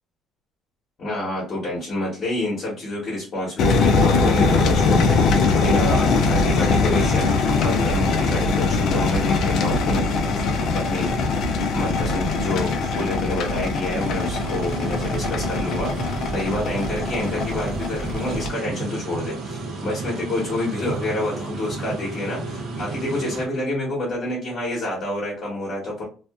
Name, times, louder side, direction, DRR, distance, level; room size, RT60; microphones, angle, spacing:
voice 1, 1.0-7.3 7.6-10.1 10.7-11.2 11.7-26.0, left 1 dB, 40° left, -6 dB, 1.1 m, -28 dB
sound 1, 3.6-18.5, left 4 dB, 55° left, 0.4 m, -21 dB
sound 2, 13.9-23.5, right 3 dB, 60° right, 0.7 m, -32 dB
2.5 x 2.4 x 2.3 m, 0.37 s
cardioid pair, 140°, 0 cm